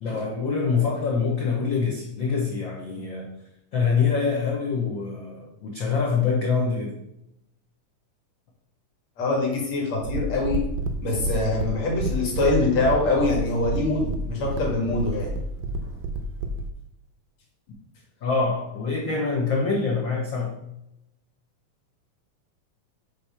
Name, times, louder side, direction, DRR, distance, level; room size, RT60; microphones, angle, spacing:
voice 1, 0.0-3.3 3.7-6.9 18.2-20.6, left 5 dB, 80° left, -1 dB, 1.0 m, -25 dB
voice 2, 9.2-10.6 11.0-15.3, left 2 dB, 55° left, -2 dB, 3.0 m, -24 dB
sound 1, 10.0-16.7, right 1 dB, 85° right, 2.4 m, -29 dB
9.4 x 3.3 x 5.7 m, 0.83 s
omnidirectional pair, 3.8 m